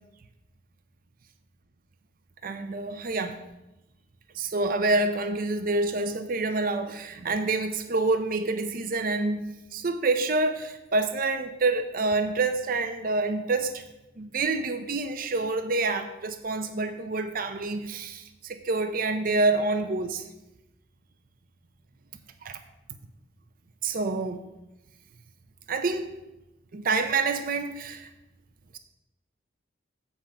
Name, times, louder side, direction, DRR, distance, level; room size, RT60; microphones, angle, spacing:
voice 1, 2.4-3.4 4.3-13.8 14.2-20.2 22.4-22.6 23.8-24.4 25.7-26.1 26.7-28.1, right 3 dB, 50° right, 8 dB, 0.5 m, -27 dB
8.0 x 4.9 x 7.1 m, 0.97 s
head